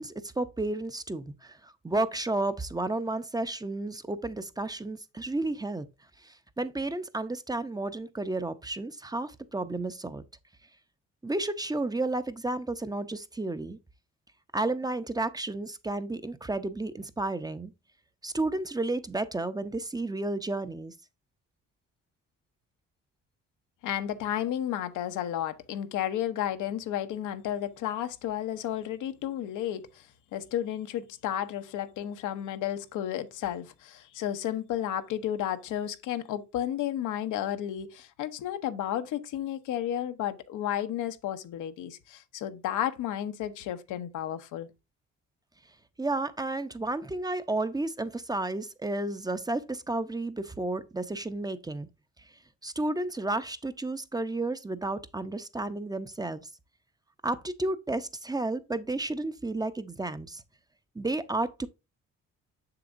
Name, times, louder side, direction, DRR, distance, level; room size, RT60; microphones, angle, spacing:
voice 1, 0.0-5.9 6.2-10.2 11.2-13.8 14.5-17.7 18.2-20.9 46.0-51.9 52.2-52.3 52.6-56.4 57.2-60.4 60.9-61.7, right 2 dB, 15° right, 0.6 m, -32 dB
voice 2, 23.8-44.7, left 11 dB, 85° left, 0.8 m, -32 dB
6.9 x 6.8 x 2.5 m
cardioid pair, 90°, 30 cm